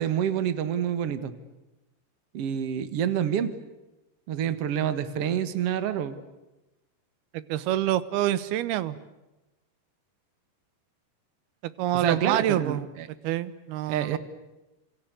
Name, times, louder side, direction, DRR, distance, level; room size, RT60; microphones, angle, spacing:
voice 1, 0.0-1.3 2.3-3.5 4.3-6.2 11.9-13.1 13.9-14.2, right 9 dB, 55° right, 12 dB, 1.8 m, -27 dB
voice 2, 7.3-9.0 11.8-12.9 13.2-14.2, right 13 dB, 75° right, 16 dB, 2.9 m, -26 dB
27.5 x 27.0 x 8.1 m, 1.0 s
omnidirectional pair, 4.9 m